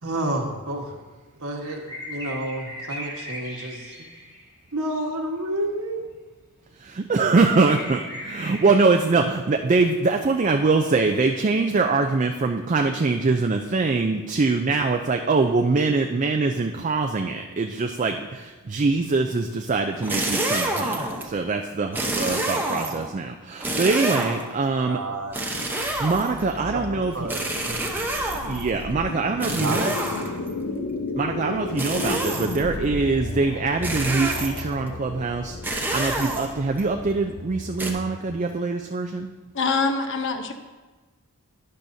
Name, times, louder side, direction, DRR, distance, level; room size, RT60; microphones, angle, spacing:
voice 1, 0.0-0.9 1.4-4.1 4.7-6.1 23.9-24.3 24.8-25.4 26.7-28.3 29.4-30.2, right 1 dB, 70° right, 1 dB, 1.4 m, -31 dB
sound 1, 1.6-4.6 7.4-9.0, equal, 15° left, 1.4 m, -37 dB
voice 2, 6.8-25.0 26.0-27.1 28.4-29.9 31.2-39.3, right 3 dB, 35° right, 4 dB, 0.4 m, -23 dB
sound 2, 20.0-21.3 21.9-23.1 23.6-24.6 25.3-26.6 27.3-28.7 29.4-30.5 31.8-32.7 33.8-34.7 35.6-36.8 37.8-37.9, right 1 dB, 10° right, 0.9 m, -28 dB
sound 3, 25.4-38.5, left 2 dB, 85° left, 0.8 m, -34 dB
voice 3, 39.5-40.5, left 4 dB, 55° left, 7 dB, 0.8 m, -24 dB
12.0 x 10.0 x 2.7 m, 1.3 s
head